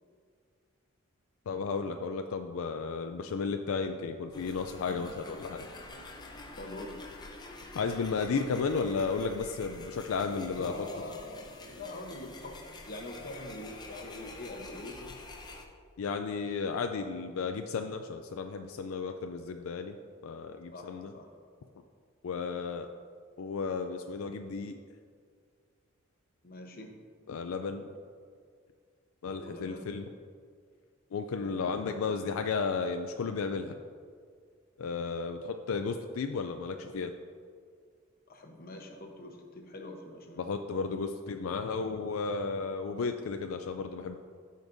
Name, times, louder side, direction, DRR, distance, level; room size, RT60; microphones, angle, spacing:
voice 1, 1.5-5.7 7.7-10.9 16.0-20.0 20.2-21.1 22.2-22.9 23.4-24.7 27.3-27.9 29.2-30.0 31.1-33.7 34.8-37.1 40.4-44.1, left 4 dB, 80° left, 6 dB, 0.4 m, -33 dB
sound 1, 4.3-15.6, left 2 dB, 20° left, 0.6 m, -47 dB
voice 2, 6.6-7.0 10.5-12.5 12.9-15.2 20.7-21.3 26.4-26.9 29.4-29.9 31.4-32.2 38.3-40.4, left 1 dB, 45° left, 2 dB, 1.0 m, -44 dB
15.5 x 5.2 x 2.6 m, 2.1 s
head